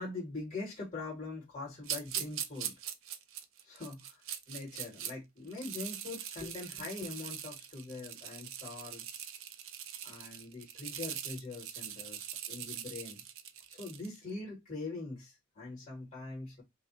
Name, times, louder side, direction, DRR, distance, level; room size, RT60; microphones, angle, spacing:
voice 1, 0.0-2.7 3.6-9.3 10.0-13.2 13.7-16.6, left 3 dB, 35° left, 2.4 m, -43 dB
sound 1, 1.8-5.1 5.5-14.2, right 9 dB, 70° right, 0.6 m, -42 dB
5.4 x 2.1 x 4.3 m
head